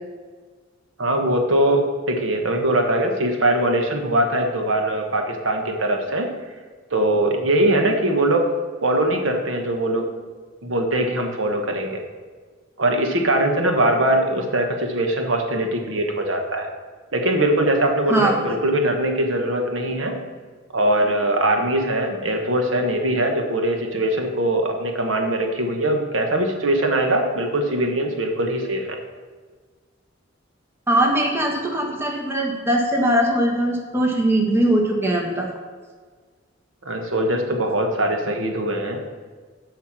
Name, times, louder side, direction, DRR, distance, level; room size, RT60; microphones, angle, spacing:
voice 1, 1.0-6.3 6.9-8.5 8.8-10.1 10.6-12.0 12.8-16.7 17.1-20.1 20.7-28.9 36.8-39.0, right 1 dB, 75° right, 3 dB, 1.2 m, -21 dB
voice 2, 30.9-35.5, right 1 dB, 10° right, 0 dB, 1.3 m, -20 dB
7.3 x 5.7 x 7.2 m, 1.5 s
head